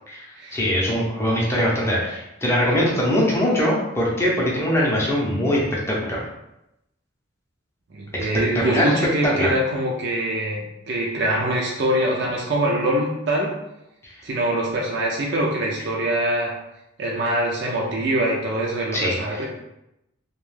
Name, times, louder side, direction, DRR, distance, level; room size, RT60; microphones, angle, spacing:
voice 1, 0.1-6.2 8.5-8.9 9.2-9.5 14.0-14.1 18.9-19.5, equal, 15° left, -4 dB, 0.6 m, -22 dB
voice 2, 7.9-13.6 14.2-16.5 17.0-19.5, right 1 dB, 55° right, -2 dB, 0.4 m, -24 dB
2.3 x 2.2 x 3.2 m, 0.87 s
head